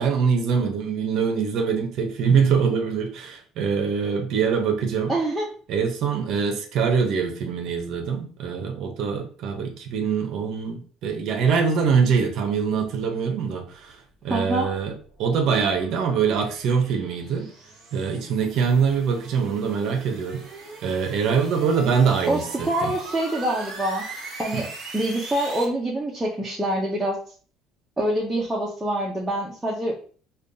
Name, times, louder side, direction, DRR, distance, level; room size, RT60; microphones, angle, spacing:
voice 1, 0.0-5.1 5.7-14.9 15.2-17.5 17.9-20.4 20.8-22.4 22.8-22.9 24.5-24.6, right 6 dB, 50° right, 4 dB, 0.6 m, -23 dB
voice 2, 5.1-5.5 14.3-14.8 22.3-24.1 24.4-27.2 28.0-30.0, right 1 dB, 5° right, -4 dB, 0.5 m, -25 dB
sound 1, 15.0-25.6, right 3 dB, 25° right, 1.0 m, -40 dB
5.1 x 2.2 x 2.6 m, 0.43 s
cardioid pair, 180°, 0 cm